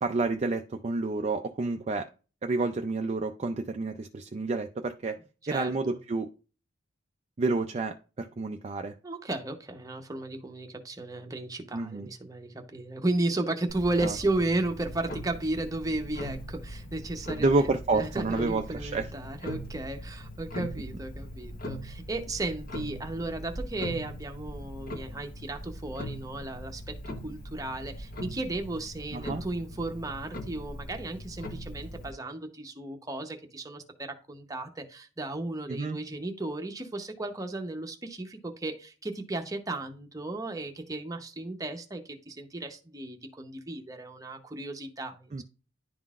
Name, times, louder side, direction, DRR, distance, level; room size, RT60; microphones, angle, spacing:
voice 1, 0.0-2.1 2.4-5.2 5.5-6.3 7.4-8.9 11.7-12.1 14.0-14.1 17.4-19.1 29.1-29.4 35.7-36.0 45.3-45.4, right 3 dB, 30° right, 5 dB, 0.4 m, -29 dB
voice 2, 5.4-6.0 9.0-27.0 27.2-45.4, right 2 dB, 15° right, 4 dB, 0.8 m, -34 dB
Clock, 13.7-32.1, equal, 45° left, 1.0 m, -40 dB
11.0 x 3.8 x 2.4 m, 0.35 s
head